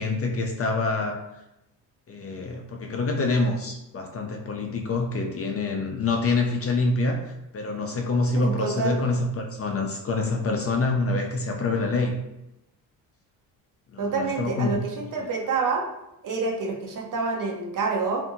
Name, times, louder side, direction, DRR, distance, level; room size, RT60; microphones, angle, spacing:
voice 1, 0.0-1.4 2.1-12.2 13.9-14.8, left 3 dB, 35° left, 1 dB, 0.4 m, -26 dB
voice 2, 8.3-9.0 14.0-15.8 16.2-18.3, right 4 dB, 45° right, 1 dB, 0.7 m, -27 dB
2.6 x 2.6 x 2.5 m, 0.89 s
supercardioid pair, 75°, 43 cm